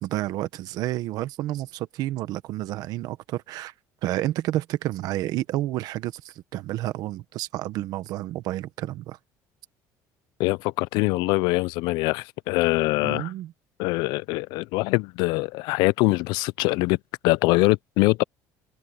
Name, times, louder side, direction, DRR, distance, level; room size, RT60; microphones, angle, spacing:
voice 1, 0.0-3.7 4.0-9.2 13.0-13.5, right 15 dB, 60° right, 1.1 m, -30 dB
voice 2, 10.4-13.3 13.8-17.0 17.2-18.2, left 23 dB, 85° left, 0.4 m, -23 dB
cardioid pair, 160°, 7 cm